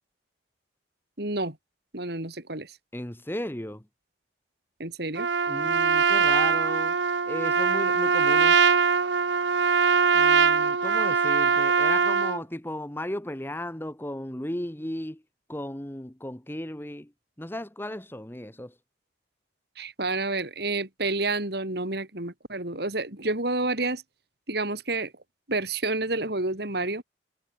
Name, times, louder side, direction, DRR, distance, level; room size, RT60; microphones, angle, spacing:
voice 1, 1.2-1.6 1.9-2.7 4.8-5.3 19.8-24.0 24.5-25.1 25.5-27.0, right 2 dB, 60° right, 3.6 m, -29 dB
voice 2, 2.9-3.8 5.5-7.0 7.3-8.6 10.1-15.2 15.5-17.1 17.4-18.7, left 1 dB, 10° left, 1.4 m, -35 dB
Trumpet, 5.2-12.4, right 5 dB, 75° right, 0.9 m, -22 dB
head